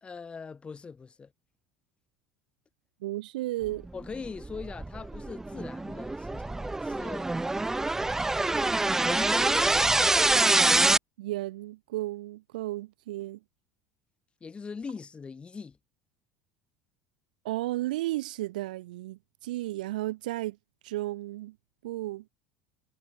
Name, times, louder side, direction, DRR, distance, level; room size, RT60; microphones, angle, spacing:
voice 1, 0.0-1.3 3.9-7.3 8.4-8.5 9.0-10.0 14.4-15.8, left 5 dB, 20° left, 1.7 m, -41 dB
voice 2, 3.0-3.9 11.2-13.4 17.4-20.6 20.8-21.6 21.8-22.3, right 17 dB, 65° right, 0.4 m, -33 dB
sound 1, 4.0-11.0, right 2 dB, 10° right, 0.5 m, -25 dB
figure-of-eight pair, 70°, 5 cm